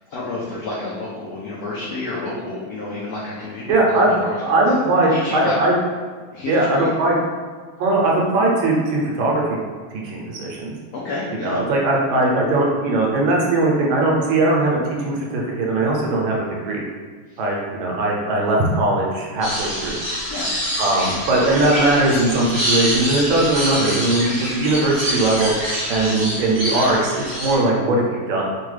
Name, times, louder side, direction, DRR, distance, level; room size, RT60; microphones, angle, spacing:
voice 1, 0.1-4.3 5.1-5.5 6.3-7.0 10.9-11.6 17.3-17.4 20.3-20.5, left 2 dB, 90° left, -6 dB, 0.8 m, -29 dB
voice 2, 3.7-4.1 4.4-5.7 6.5-7.1 7.8-9.6 9.9-10.7 11.4-16.8 17.4-19.9 20.8-25.5 25.9-28.4, right 2 dB, 75° right, -2 dB, 1.4 m, -19 dB
sound 1, 19.4-27.6, equal, 20° right, 0.7 m, -26 dB
3.7 x 2.2 x 3.1 m, 1.5 s
omnidirectional pair, 2.3 m